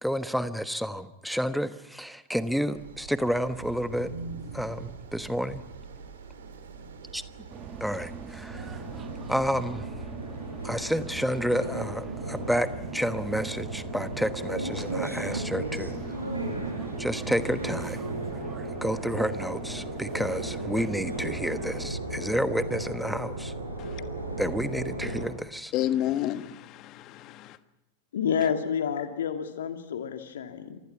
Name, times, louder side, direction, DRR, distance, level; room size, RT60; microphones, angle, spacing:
voice 1, 0.0-4.1 4.5-5.6 7.1-7.2 7.8-8.8 9.3-9.9 10.6-12.7 12.9-15.9 17.0-18.0 18.8-23.5 24.4-25.7 28.4-28.5, equal, ahead, 13 dB, 1.2 m, -30 dB
sound 1, 2.7-9.7, right 5 dB, 65° right, 3.6 m, -43 dB
sound 2, 7.5-21.9, right 6 dB, 20° right, 1.4 m, -43 dB
sound 3, 8.5-25.3, right 2 dB, 85° right, 5.4 m, -35 dB
voice 2, 25.7-27.6, left 12 dB, 35° left, 12 dB, 1.4 m, -30 dB
voice 3, 28.1-30.8, left 7 dB, 60° left, 6 dB, 2.5 m, -29 dB
28.5 x 24.5 x 5.9 m, 0.89 s
figure-of-eight pair, 90°, 0 cm